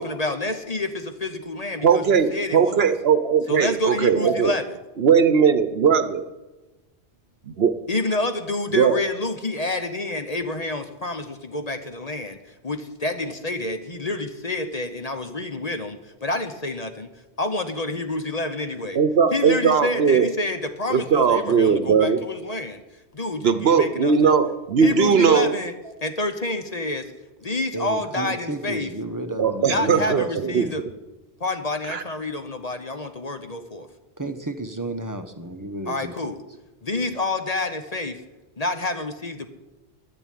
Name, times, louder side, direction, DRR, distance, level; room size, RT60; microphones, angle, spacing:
voice 1, 0.0-2.9 3.5-4.8 7.9-12.4 12.6-17.1 17.4-19.0 19.3-22.8 23.1-24.3 24.8-25.7 26.0-27.1 27.4-28.9 29.6-30.8 31.4-33.9 35.9-36.4 36.8-38.2 38.6-39.5, left 2 dB, 40° left, 8 dB, 1.0 m, -28 dB
voice 2, 1.8-4.5 5.0-6.2 7.4-7.8 8.7-9.0 19.0-20.3 20.9-22.2 23.4-25.6 29.4-30.7 31.9-32.0, right 6 dB, 65° right, 12 dB, 1.1 m, -19 dB
voice 3, 27.5-30.7 34.2-36.3 37.0-37.1, right 2 dB, 20° right, 7 dB, 1.0 m, -33 dB
10.5 x 10.0 x 9.3 m, 1.1 s
omnidirectional pair, 1.1 m